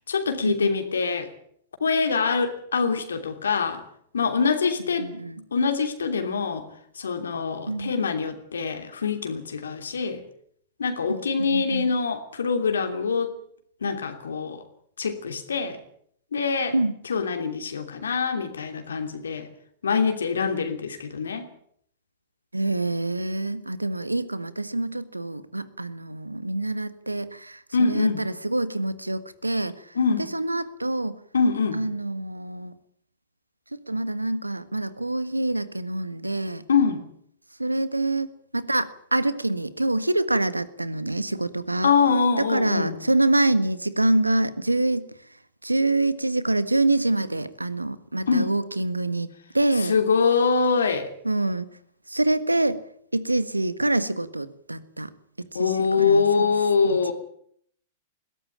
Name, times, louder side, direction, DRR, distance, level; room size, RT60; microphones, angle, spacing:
voice 1, 0.1-1.3 1.8-3.8 4.1-5.1 5.5-6.7 7.0-10.2 10.8-13.3 13.8-14.6 15.0-15.8 16.3-16.7 17.0-19.5 19.8-21.5 27.7-28.2 29.9-30.3 31.3-31.8 36.7-37.0 41.8-43.0 48.3-48.5 49.8-51.1 55.5-57.1, left 5 dB, 70° left, 6 dB, 3.0 m, -24 dB
voice 2, 5.0-5.4 7.7-7.9 11.4-11.9 16.7-16.9 22.5-29.8 30.3-31.2 31.7-32.7 33.9-36.6 37.6-38.3 38.5-41.9 42.4-45.1 45.6-50.0 51.2-51.7 52.1-52.8 53.1-55.1 55.5-56.2 56.8-57.1, right 2 dB, 90° right, 15 dB, 1.5 m, -26 dB
21.0 x 17.0 x 8.8 m, 0.66 s
figure-of-eight pair, 100°, 0 cm